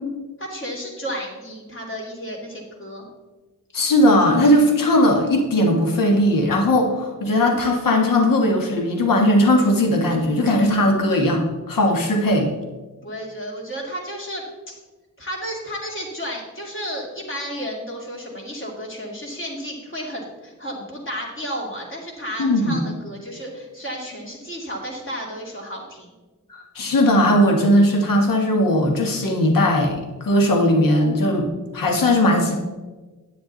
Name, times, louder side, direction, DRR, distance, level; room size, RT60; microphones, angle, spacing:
voice 1, 0.4-3.1 13.0-14.7 15.2-26.1, equal, 40° left, -2 dB, 2.5 m, -32 dB
voice 2, 3.7-12.5 22.4-22.8 26.5-31.5 31.7-32.6, left 1 dB, 90° left, 2 dB, 1.7 m, -18 dB
10.5 x 8.6 x 4.0 m, 1.2 s
wide cardioid pair, 150°, 32 cm